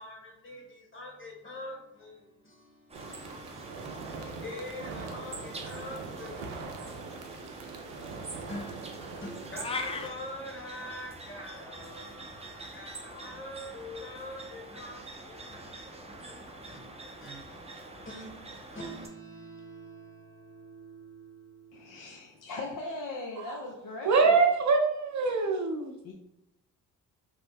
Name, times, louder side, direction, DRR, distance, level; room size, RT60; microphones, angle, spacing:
voice 1, 0.0-18.4 18.7-22.5, left 1 dB, 35° left, -1 dB, 1.4 m, -45 dB
sound 1, 2.9-19.1, right 2 dB, 15° right, 0.7 m, -46 dB
sound 2, 2.9-10.1, right 4 dB, 90° right, 0.5 m, -42 dB
sound 3, 9.6-10.1, left 4 dB, 15° left, 0.3 m, -33 dB
voice 2, 21.7-24.4 26.0-26.1, left 2 dB, 60° left, -1 dB, 0.7 m, -39 dB
voice 3, 24.0-25.9, right 4 dB, 50° right, 4 dB, 0.7 m, -24 dB
3.2 x 2.1 x 3.4 m, 0.82 s
supercardioid pair, 60°, 37 cm